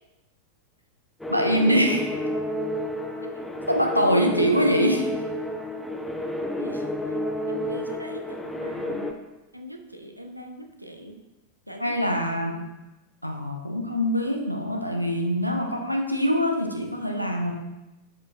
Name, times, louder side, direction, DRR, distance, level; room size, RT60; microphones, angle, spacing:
sound 1, 1.2-9.1, left 1 dB, 5° left, 0.6 m, -30 dB
voice 1, 1.3-2.1 3.7-5.1 11.8-12.6 13.2-17.5, equal, 90° left, 3 dB, 0.7 m, -24 dB
voice 2, 6.6-7.2 7.5-9.2 9.5-11.2 11.7-12.7, equal, 90° right, 4 dB, 0.6 m, -42 dB
11.0 x 5.1 x 2.4 m, 1.0 s
figure-of-eight pair, 90°, 0 cm